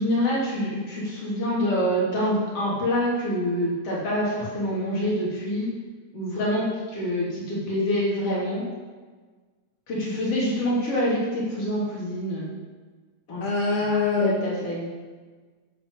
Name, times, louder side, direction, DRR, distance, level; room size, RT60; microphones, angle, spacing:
voice 1, 0.0-5.7 6.1-8.6 9.9-12.5 13.3-13.4 14.2-14.9, equal, 50° left, -6 dB, 4.3 m, -26 dB
voice 2, 13.4-14.3, left 3 dB, 85° left, -4 dB, 3.6 m, -25 dB
13.5 x 7.9 x 5.0 m, 1.4 s
omnidirectional pair, 3.5 m